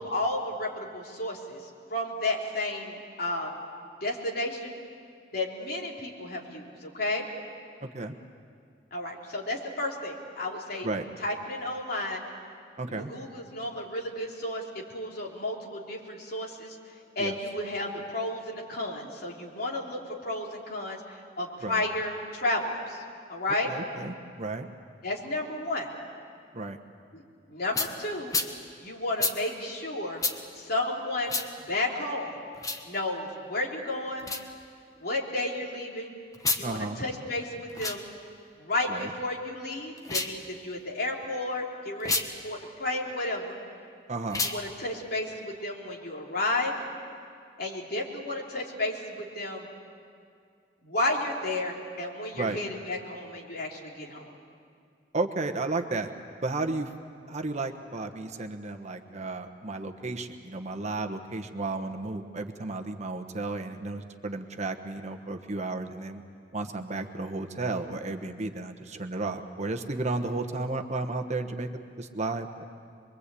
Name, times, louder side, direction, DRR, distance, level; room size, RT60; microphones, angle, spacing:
voice 1, 0.0-1.6 1.9-3.5 4.0-4.7 5.3-7.2 8.9-10.9 11.2-12.2 12.9-23.0 23.3-23.7 25.0-25.9 27.1-27.2 27.5-28.3 28.8-30.3 30.5-31.4 31.7-32.4 32.9-34.3 35.0-36.1 36.6-38.1 38.6-43.6 44.4-46.7 47.6-49.7 50.8-54.3, left 2 dB, 60° left, -2 dB, 3.5 m, -32 dB
voice 2, 7.8-8.1 10.8-11.0 12.8-13.1 17.2-17.4 21.6-21.8 23.6-24.7 26.5-26.8 36.6-37.0 38.9-39.1 44.1-44.4 52.3-52.6 55.1-56.1 56.4-56.9 57.3-66.2 66.5-71.7 72.0-72.5, right 3 dB, 40° right, 6 dB, 1.2 m, -33 dB
sound 1, 27.7-27.9 28.3-28.5 29.2-29.4 30.2-30.4 31.3-31.5 32.5-32.8 34.2-34.4 36.3-36.6 37.7-38.0 40.0-40.4 42.0-42.3 44.3-44.6, left 3 dB, 20° left, 1.3 m, -29 dB
24.5 x 23.0 x 8.4 m, 2.2 s
head